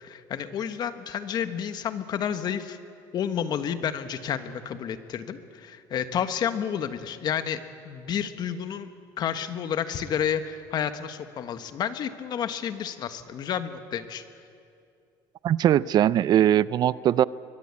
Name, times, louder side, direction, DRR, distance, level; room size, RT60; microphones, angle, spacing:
voice 1, 0.0-2.8 3.1-7.6 7.8-14.2, left 8 dB, 50° left, 10 dB, 1.4 m, -30 dB
voice 2, 15.4-17.2, right 11 dB, 50° right, 19 dB, 0.5 m, -20 dB
23.0 x 20.5 x 8.5 m, 2.5 s
cardioid pair, 110°, 9 cm